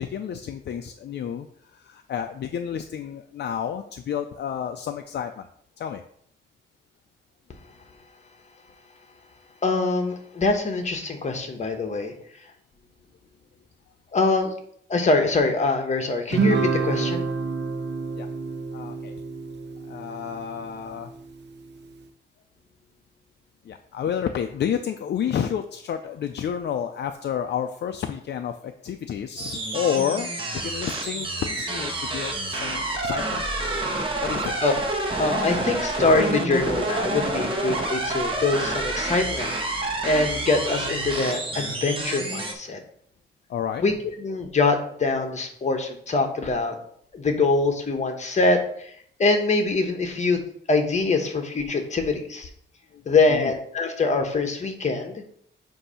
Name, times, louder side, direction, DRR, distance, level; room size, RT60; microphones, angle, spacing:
voice 1, 0.0-5.5 5.8-6.0 18.2-18.3 18.7-19.1 19.9-21.1 23.6-33.4 34.2-34.6 43.5-43.8 52.9-53.0 53.3-53.5, left 8 dB, 60° left, 6 dB, 0.5 m, -30 dB
voice 2, 9.6-12.1 14.1-14.5 14.9-17.3 34.6-34.7 35.2-42.8 43.8-43.9 44.2-46.8 47.1-50.4 50.7-52.5 53.1-55.3, left 3 dB, 35° left, 5 dB, 1.1 m, -24 dB
Guitar, 16.3-20.9, right 5 dB, 60° right, 0.6 m, -28 dB
sound 1, 29.4-42.5, right 2 dB, 25° right, 1.2 m, -28 dB
7.9 x 2.8 x 5.6 m, 0.65 s
cardioid pair, 120°, 20 cm